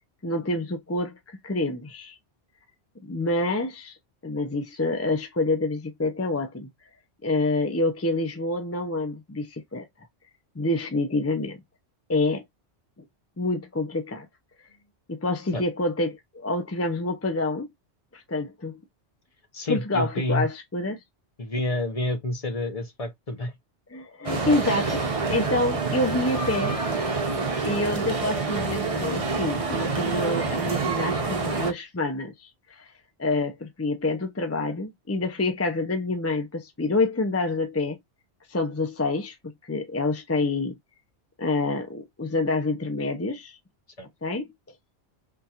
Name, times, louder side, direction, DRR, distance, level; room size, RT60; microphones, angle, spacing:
voice 1, 0.2-2.1 3.0-4.0 4.2-6.7 7.2-9.9 10.6-11.6 12.1-12.4 13.4-14.3 15.1-17.7 18.1-18.8 19.7-21.0 23.9-25.0 25.3-26.8 27.6-32.9 33.2-38.0 38.5-39.4 39.6-40.8 41.4-43.6 44.2-44.5, left 2 dB, 20° left, 0.4 m, -27 dB
voice 2, 19.5-20.5 21.4-23.5 44.0-44.1, left 1 dB, 35° left, 0.8 m, -28 dB
sound 1, 24.2-31.7, right 4 dB, 35° right, 0.7 m, -27 dB
3.7 x 2.4 x 2.8 m
omnidirectional pair, 1.2 m